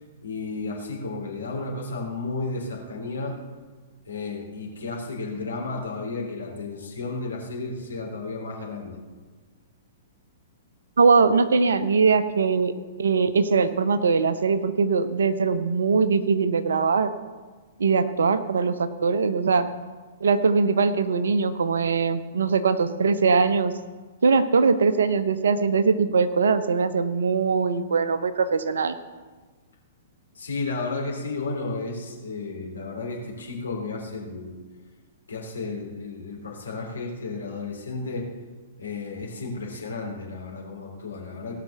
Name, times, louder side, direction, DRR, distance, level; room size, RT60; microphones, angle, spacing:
voice 1, 0.2-3.4 4.1-9.0 30.3-34.6 35.3-38.3 38.8-41.5, left 3 dB, 75° left, -1 dB, 3.4 m, -33 dB
voice 2, 11.0-12.7 13.0-17.1 17.8-19.7 20.2-23.7 24.2-28.9, right 5 dB, 70° right, 12 dB, 0.8 m, -21 dB
17.5 x 5.9 x 6.7 m, 1.4 s
figure-of-eight pair, 110°, 0 cm